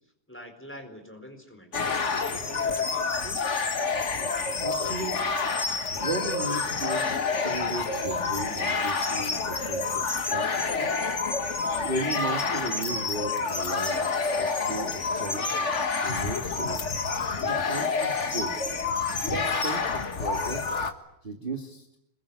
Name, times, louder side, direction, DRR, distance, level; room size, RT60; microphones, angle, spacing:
voice 1, 0.3-3.5, equal, 5° left, 5 dB, 4.1 m, -45 dB
sound 1, 1.7-20.9, left 4 dB, 35° left, 1.2 m, -28 dB
voice 2, 4.3-5.3 5.6-10.9 11.8-15.5 16.0-16.8 17.5-18.7 19.1-20.8 21.2-21.9, right 2 dB, 20° right, 4 dB, 1.7 m, -36 dB
26.0 x 22.0 x 9.8 m, 0.80 s
omnidirectional pair, 3.5 m